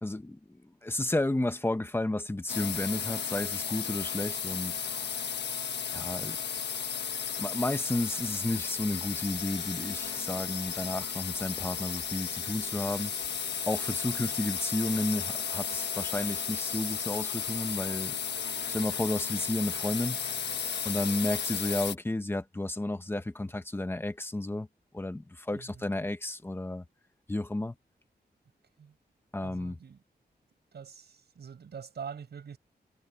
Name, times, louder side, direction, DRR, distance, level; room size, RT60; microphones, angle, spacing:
voice 1, 0.0-4.8 5.9-6.4 7.4-13.1 13.7-18.2 18.7-20.2 20.8-24.7 24.9-26.8 27.3-27.7 29.3-29.8, left 2 dB, 15° left, 1.1 m, -32 dB
sound 1, 2.5-22.0, left 7 dB, 90° left, 1.3 m, -34 dB
voice 2, 25.5-25.8 28.8-28.9 29.4-30.0 30.7-32.6, right 7 dB, 75° right, 5.9 m, -44 dB
wide cardioid pair, 180°, 17 cm